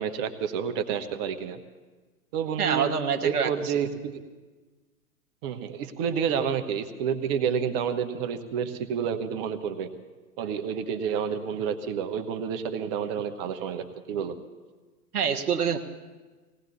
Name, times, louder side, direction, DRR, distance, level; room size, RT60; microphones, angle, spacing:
voice 1, 0.0-1.6 2.3-2.9 3.2-4.2 5.4-9.9 10.4-14.3, right 7 dB, 40° right, 9 dB, 1.2 m, -29 dB
voice 2, 2.6-3.7 15.1-15.8, right 7 dB, 70° right, 8 dB, 1.4 m, -26 dB
19.5 x 18.0 x 4.1 m, 1.3 s
hypercardioid pair, 115°, 46 cm